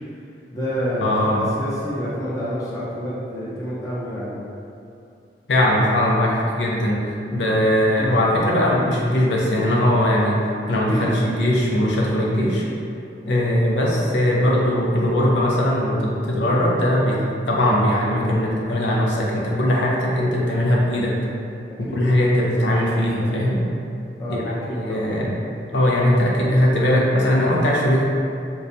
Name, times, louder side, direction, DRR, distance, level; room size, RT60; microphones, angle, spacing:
voice 1, 0.5-4.4 7.5-7.7 7.9-8.2 10.9-11.2 13.2-13.4 21.7-22.0 24.2-25.2, equal, 20° left, -9 dB, 0.7 m, -28 dB
voice 2, 1.0-1.5 5.5-10.4 10.7-12.6 13.3-21.1 21.8-23.6 24.3-25.3 25.7-28.0, left 1 dB, 80° left, -3 dB, 0.5 m, -20 dB
4.6 x 2.2 x 2.6 m, 2.5 s
head